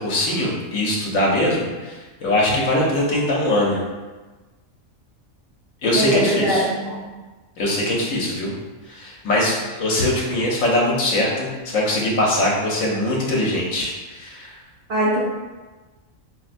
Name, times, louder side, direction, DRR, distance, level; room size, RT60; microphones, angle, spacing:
voice 1, 0.0-3.8 5.8-6.7 7.6-8.5 8.9-14.5, left 1 dB, 75° left, -3 dB, 1.1 m, -22 dB
voice 2, 5.9-7.0 14.9-15.2, right 1 dB, 60° right, -5 dB, 0.7 m, -21 dB
4.0 x 2.1 x 2.5 m, 1.3 s
omnidirectional pair, 1.4 m